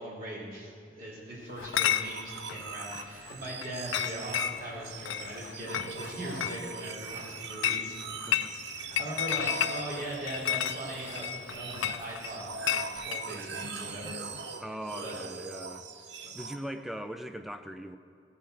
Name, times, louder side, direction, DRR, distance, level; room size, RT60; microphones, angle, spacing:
voice 1, 0.0-8.0 8.7-14.2 15.0-15.1 16.4-16.5, right 1 dB, 45° right, -6 dB, 3.3 m, -40 dB
Chatter / Chink clink, 1.6-13.3, left 10 dB, 85° left, 0.4 m, -34 dB
sound 1, 1.7-16.6, right 5 dB, 60° right, 0.7 m, -42 dB
voice 2, 14.6-15.9 16.3-18.0, equal, ahead, 8 dB, 0.4 m, -40 dB
16.0 x 5.7 x 7.6 m, 2.4 s
head